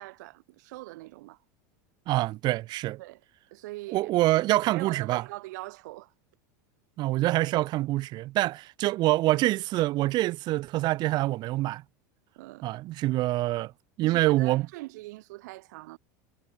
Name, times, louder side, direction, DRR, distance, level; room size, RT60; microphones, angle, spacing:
voice 1, 0.0-1.4 3.0-3.2 3.5-4.1 4.7-6.1 12.4-12.7 14.0-16.0, right 20 dB, 75° right, 6.8 m, -42 dB
voice 2, 2.1-3.0 3.9-5.2 7.0-11.8 12.6-13.7 14.0-14.7, right 17 dB, 50° right, 2.1 m, -25 dB
supercardioid pair, 120°, 9 cm